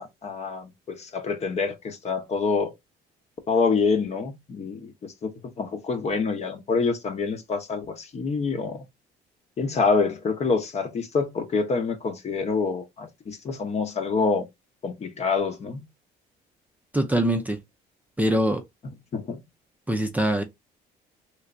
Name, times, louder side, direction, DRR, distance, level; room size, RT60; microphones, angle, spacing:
voice 1, 0.0-2.7 3.5-8.8 9.6-14.5 14.8-15.9 18.8-19.4, left 4 dB, 40° left, 0.9 m, -26 dB
voice 2, 16.9-17.6 18.2-18.6 19.9-20.4, right 1 dB, 10° right, 0.5 m, -23 dB
3.3 x 3.1 x 2.5 m
cardioid pair, 110°, 17 cm